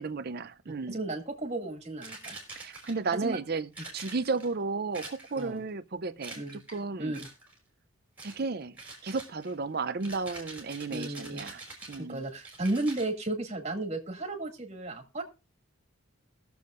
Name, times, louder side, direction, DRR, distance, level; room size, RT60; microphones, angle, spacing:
voice 1, 0.0-1.0 2.6-7.1 8.2-8.8 9.0-11.6 11.9-12.2, right 4 dB, 45° right, 0.6 m, -33 dB
voice 2, 0.9-2.4 3.1-3.4 5.4-5.6 6.4-6.6 7.0-7.2 10.9-11.4 12.0-15.2, right 2 dB, 30° right, 2.2 m, -34 dB
sound 1, 2.0-3.2 3.7-4.5 4.9-5.6 6.2-6.8 7.1-7.6 8.2-8.4 8.8-13.1, right 2 dB, 5° right, 3.3 m, -46 dB
20.5 x 7.0 x 2.5 m
head